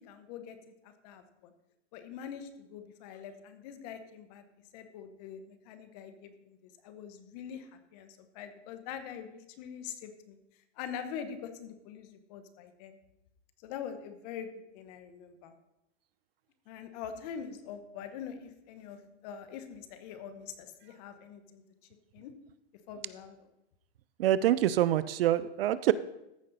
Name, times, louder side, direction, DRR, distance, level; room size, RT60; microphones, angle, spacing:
voice 1, 0.0-1.5 1.9-4.4 4.7-6.6 6.8-10.4 10.8-13.0 13.6-14.5 14.7-15.5 16.7-21.6 22.1-22.3 22.9-23.4, left 8 dB, 35° left, 9 dB, 1.0 m, -44 dB
voice 2, 24.2-25.9, right 12 dB, 55° right, 16 dB, 0.4 m, -25 dB
14.5 x 5.2 x 4.0 m, 0.87 s
hypercardioid pair, 150°, 35 cm